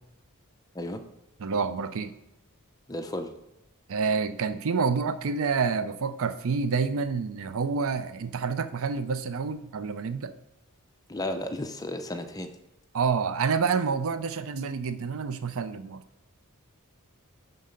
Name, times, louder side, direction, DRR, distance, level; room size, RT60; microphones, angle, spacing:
voice 1, 1.4-2.1 3.9-10.3 12.9-16.0, right 5 dB, 65° right, 12 dB, 0.5 m, -28 dB
voice 2, 2.9-3.3 11.1-12.5, left 1 dB, 15° left, 6 dB, 0.6 m, -33 dB
11.0 x 4.0 x 5.1 m, 0.92 s
head